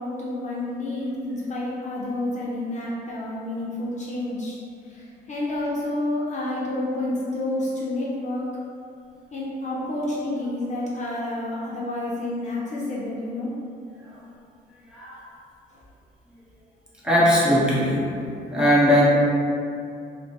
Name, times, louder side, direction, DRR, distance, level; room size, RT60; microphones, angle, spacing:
voice 1, 0.0-4.6 4.8-8.5 9.3-13.5 15.7-15.8, left 1 dB, 40° left, -6 dB, 0.8 m, -29 dB
voice 2, 17.0-18.1 18.5-19.0, equal, 5° right, -8 dB, 1.1 m, -19 dB
4.7 x 2.2 x 2.9 m, 2.5 s
cardioid pair, 80°, 18 cm